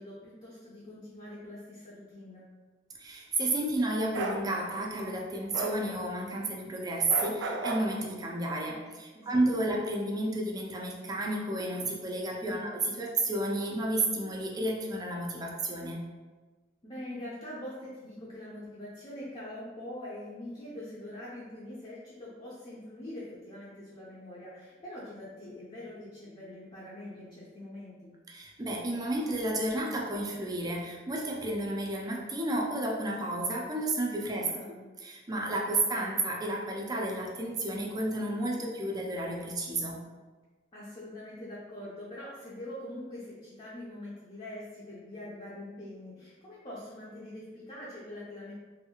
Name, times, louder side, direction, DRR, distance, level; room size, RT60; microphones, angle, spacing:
voice 1, 0.0-2.5 9.1-9.7 12.4-12.7 16.8-28.1 34.2-34.9 40.7-48.5, left 1 dB, 30° left, -8 dB, 0.6 m, -44 dB
voice 2, 3.0-16.0 28.3-34.5 35.0-40.0, right 1 dB, 20° right, -1 dB, 0.4 m, -31 dB
Bark, 4.1-4.4 5.5-5.8 7.1-7.9, right 3 dB, 90° right, 0.4 m, -33 dB
2.7 x 2.5 x 2.7 m, 1.3 s
head